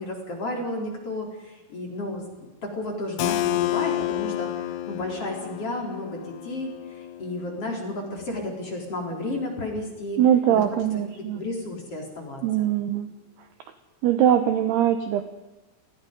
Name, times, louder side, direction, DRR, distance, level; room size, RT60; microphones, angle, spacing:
voice 1, 0.0-10.2 10.5-10.6 11.3-12.7, left 1 dB, 30° left, 1 dB, 4.6 m, -33 dB
Keyboard (musical), 3.2-8.7, left 14 dB, 90° left, 3.7 m, -31 dB
voice 2, 10.2-11.4 12.4-13.1 14.0-15.2, right 10 dB, 75° right, 8 dB, 2.5 m, -21 dB
29.5 x 20.5 x 5.4 m, 1.1 s
omnidirectional pair, 5.9 m